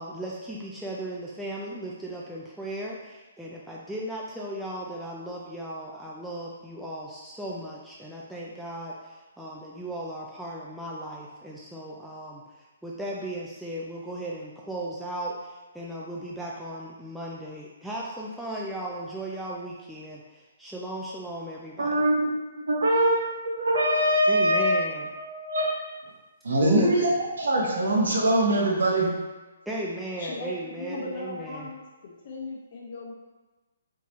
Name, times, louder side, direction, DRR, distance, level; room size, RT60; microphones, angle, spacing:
voice 1, 0.0-21.9 24.3-25.1 26.6-27.1 29.7-31.7, right 1 dB, ahead, -5 dB, 0.3 m, -36 dB
voice 2, 21.8-22.1 22.4-23.2 23.4-25.7 26.4-27.1 27.4-29.1, right 1 dB, 80° right, -2 dB, 1.0 m, -23 dB
voice 3, 30.2-30.5 30.8-33.1, left 3 dB, 50° left, -2 dB, 0.8 m, -37 dB
3.6 x 2.8 x 3.0 m, 1.2 s
hypercardioid pair, 150°, 0 cm